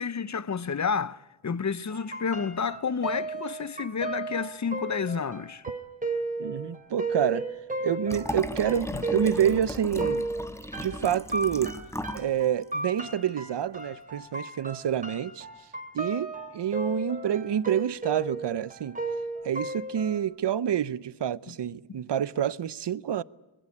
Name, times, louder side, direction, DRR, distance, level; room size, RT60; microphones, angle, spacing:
voice 1, 0.0-5.6 8.9-9.0 21.5-21.6, left 6 dB, 40° left, 0.8 m, -30 dB
sound 1, 1.9-20.2, right 2 dB, 20° right, 3.4 m, -35 dB
voice 2, 6.4-7.4 7.8-10.3 10.8-11.7 12.1-15.5 15.9-19.0 19.4-23.2, right 9 dB, 65° right, 0.8 m, -28 dB
Liquid, 8.1-12.3 12.6-12.7, left 1 dB, 5° left, 1.3 m, -36 dB
25.0 x 21.0 x 8.6 m
wide cardioid pair, 100°, 44 cm